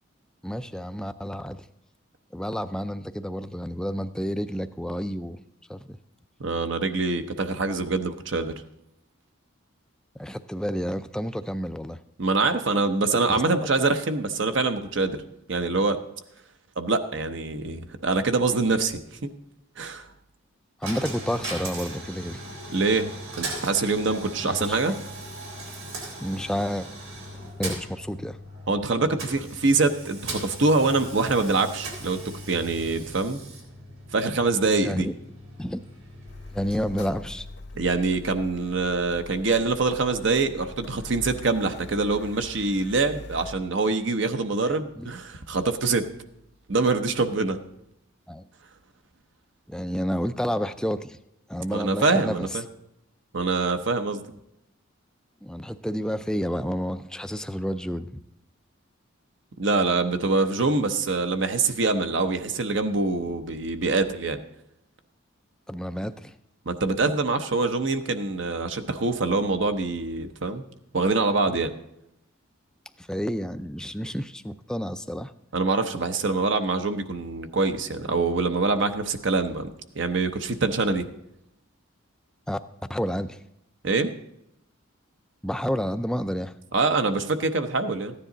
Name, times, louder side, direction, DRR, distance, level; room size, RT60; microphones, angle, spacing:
voice 1, 0.4-1.7 2.3-5.4 5.7-6.0 10.2-12.0 20.8-22.4 24.4-25.0 26.2-26.9 27.6-28.4 34.8-35.1 35.6-35.8 36.5-37.5 44.7-45.1 48.3-48.5 49.7-51.2 51.5-52.5 55.4-58.2 65.7-66.3 71.5-71.6 73.0-75.3 82.5-82.6 82.9-83.4 85.4-86.5, equal, 5° left, 10 dB, 0.3 m, -30 dB
voice 2, 6.4-8.5 12.2-15.2 15.5-16.0 16.8-19.3 19.8-20.1 22.7-23.1 23.4-24.9 28.7-32.2 32.5-33.4 34.1-35.1 37.7-46.1 46.7-47.6 51.7-52.6 53.3-54.2 59.6-64.4 66.7-70.6 70.9-71.7 75.5-79.7 80.0-81.1 83.8-84.1 86.7-88.1, right 3 dB, 60° right, 7 dB, 0.8 m, -24 dB
Coin (dropping), 20.8-37.8, right 1 dB, 90° right, 3.7 m, -39 dB
Car, 36.3-43.5, left 2 dB, 55° left, 0.6 m, -43 dB
14.5 x 9.9 x 3.9 m, 0.82 s
head